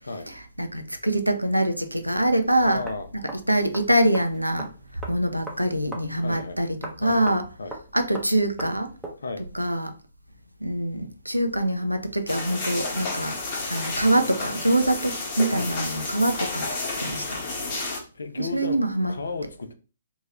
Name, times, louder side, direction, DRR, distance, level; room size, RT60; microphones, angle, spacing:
voice 1, 0.3-2.8 3.1-3.2 3.5-7.4 7.9-8.9 9.5-9.9 10.6-13.4 13.7-17.4 18.4-19.1, right 1 dB, 85° right, 0.5 m, -24 dB
voice 2, 2.6-3.1 6.2-6.6 7.0-7.7 9.2-9.4 15.5-15.7 18.1-18.8 19.1-19.7, left 3 dB, 65° left, 0.4 m, -34 dB
sound 1, 2.6-9.2, right 1 dB, ahead, 0.6 m, -42 dB
sound 2, 12.3-18.0, left 3 dB, 35° left, 0.9 m, -31 dB
2.8 x 2.2 x 3.0 m
figure-of-eight pair, 130°, 0 cm